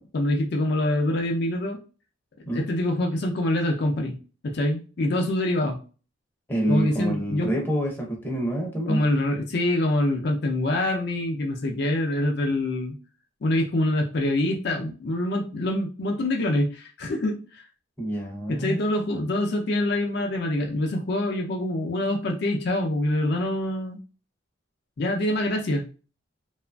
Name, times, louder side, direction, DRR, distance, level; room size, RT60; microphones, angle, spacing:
voice 1, 0.1-1.8 2.5-4.2 4.4-5.8 6.7-7.6 8.9-12.9 13.4-17.6 18.5-24.0 25.0-25.9, left 1 dB, 55° left, 2 dB, 0.4 m, -25 dB
voice 2, 6.5-9.0 18.0-18.8, right 1 dB, 10° left, -1 dB, 0.6 m, -27 dB
2.9 x 2.4 x 2.2 m, 0.35 s
head